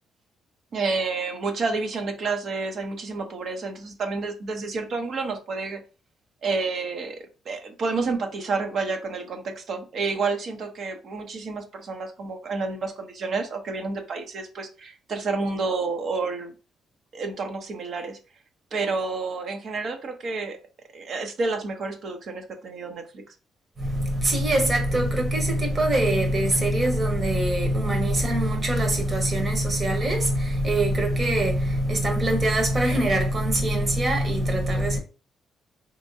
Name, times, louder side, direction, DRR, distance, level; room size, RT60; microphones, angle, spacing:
voice 1, 0.7-5.8 6.4-7.2 7.5-16.5 17.1-18.2 18.7-20.6 20.9-23.2, right 4 dB, 55° right, 0.7 m, -29 dB
voice 2, 23.8-35.0, right 1 dB, 35° right, 1.1 m, -23 dB
3.5 x 2.9 x 2.7 m
cardioid pair, 90°, 0 cm